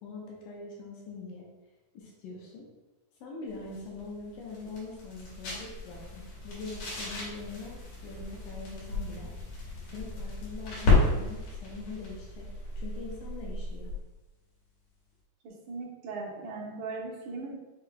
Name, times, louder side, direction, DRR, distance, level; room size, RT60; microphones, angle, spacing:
voice 1, 0.0-1.5 1.9-2.7 3.2-9.3 9.9-12.5 12.8-13.9, left 3 dB, 75° left, -2 dB, 2.3 m, -43 dB
sound 1, 3.5-14.1, left 3 dB, 55° left, 2.3 m, -32 dB
voice 2, 15.4-17.6, right 3 dB, 65° right, -5 dB, 2.0 m, -38 dB
6.4 x 3.6 x 2.2 m, 1.1 s
omnidirectional pair, 4.4 m